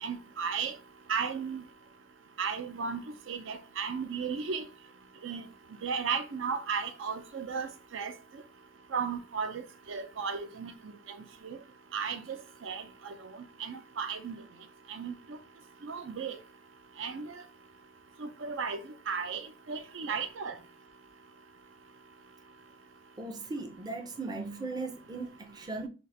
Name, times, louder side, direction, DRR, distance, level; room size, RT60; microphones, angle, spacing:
voice 1, 0.0-0.7 1.1-1.6 2.4-3.0 3.3-4.6 5.2-5.4 5.8-8.1 8.9-10.7 11.1-11.2 11.5-11.6 11.9-14.4 14.9-15.1 15.8-16.4 17.0-17.4 18.2-18.8 19.1-19.4 19.7-20.6, right 6 dB, 80° right, 0.5 m, -35 dB
voice 2, 23.2-25.9, right 3 dB, 20° right, 0.5 m, -38 dB
4.1 x 2.4 x 3.2 m
head